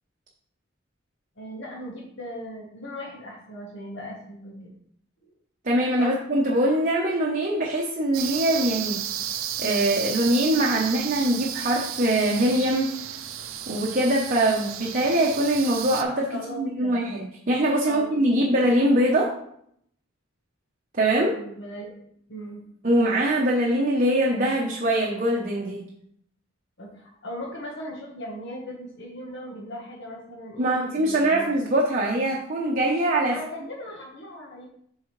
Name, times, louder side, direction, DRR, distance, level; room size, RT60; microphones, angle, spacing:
voice 1, 1.4-4.7 5.2-5.3 6.0-6.1 16.3-17.1 17.9-18.5 21.2-21.9 22.3-22.6 26.8-31.8 33.3-34.6, equal, 55° left, -2 dB, 1.3 m, -38 dB
voice 2, 5.6-9.0 9.6-12.9 13.7-19.3 20.9-21.4 22.8-25.8 30.6-33.4, right 1 dB, 40° right, -2 dB, 0.8 m, -23 dB
sound 1, 8.1-16.0, right 10 dB, 75° right, 0.6 m, -33 dB
7.9 x 4.7 x 3.2 m, 0.69 s
head